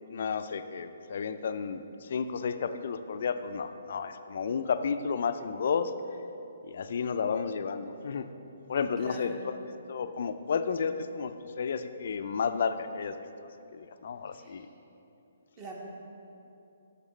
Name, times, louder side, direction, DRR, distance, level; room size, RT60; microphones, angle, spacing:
voice 1, 0.1-5.9 6.7-8.3 8.7-9.6 9.9-13.2 13.7-14.7, left 6 dB, 60° left, 10 dB, 0.4 m, -32 dB
voice 2, 9.0-9.5 14.3-14.7 15.6-15.7, right 2 dB, 30° right, -1 dB, 1.4 m, -45 dB
11.0 x 6.6 x 3.1 m, 2.8 s
hypercardioid pair, 140°, 0 cm